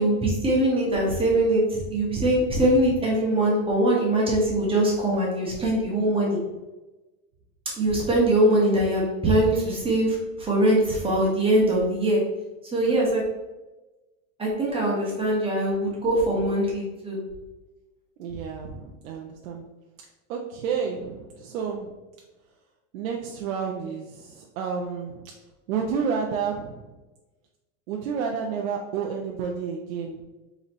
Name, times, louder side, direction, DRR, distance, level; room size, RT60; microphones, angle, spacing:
voice 1, 0.0-6.4 7.8-12.2 12.7-13.2 14.4-17.2, right 1 dB, 15° right, -4 dB, 1.3 m, -22 dB
voice 2, 18.2-19.6 20.3-22.0 22.9-25.2 25.7-27.0 27.9-30.2, right 6 dB, 80° right, 0 dB, 0.7 m, -30 dB
4.1 x 4.0 x 3.0 m, 1.1 s
supercardioid pair, 145°, 40 cm